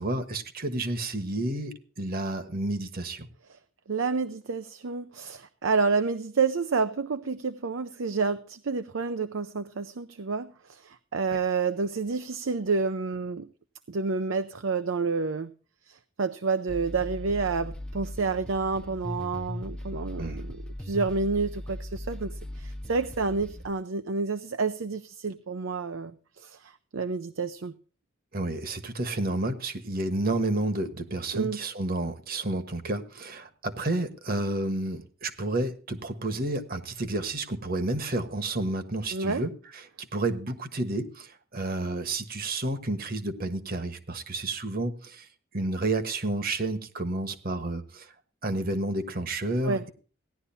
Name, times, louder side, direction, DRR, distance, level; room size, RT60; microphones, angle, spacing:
voice 1, 0.0-3.3 20.2-20.4 28.3-45.3 45.5-48.1 48.4-49.9, right 2 dB, 45° right, 9 dB, 1.3 m, -30 dB
voice 2, 3.9-13.5 13.9-15.5 15.9-27.7 31.3-31.6 39.1-39.4 49.6-49.8, right 4 dB, 70° right, 10 dB, 0.6 m, -29 dB
sound 1, 16.7-23.7, left 1 dB, 5° left, 0.6 m, -38 dB
17.0 x 11.0 x 2.7 m, 0.39 s
head